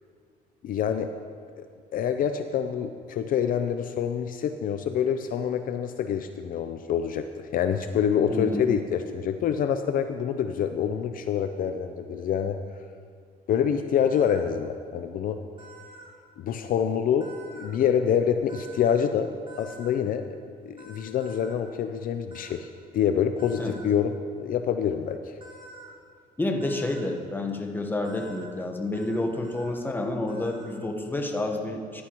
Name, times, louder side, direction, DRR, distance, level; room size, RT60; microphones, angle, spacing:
voice 1, 0.6-1.1 1.6-1.7 1.9-12.6 13.5-15.4 16.4-19.3 19.6-25.3, left 8 dB, 55° left, 8 dB, 0.5 m, -26 dB
voice 2, 8.3-8.7 23.6-23.7 26.4-32.0, left 2 dB, 10° left, 3 dB, 1.1 m, -29 dB
sound 1, 14.1-14.5 15.6-16.1 17.2-17.8 18.5-19.0 19.5-19.9 20.8-21.6 22.3-22.5 23.4-23.9 25.4-25.9 26.6-27.0 28.0-28.5 28.9-29.2 29.4-29.8 30.3-30.8, right 2 dB, 30° right, 2.2 m, -47 dB
14.0 x 10.5 x 3.0 m, 2.1 s
cardioid pair, 110°, 17 cm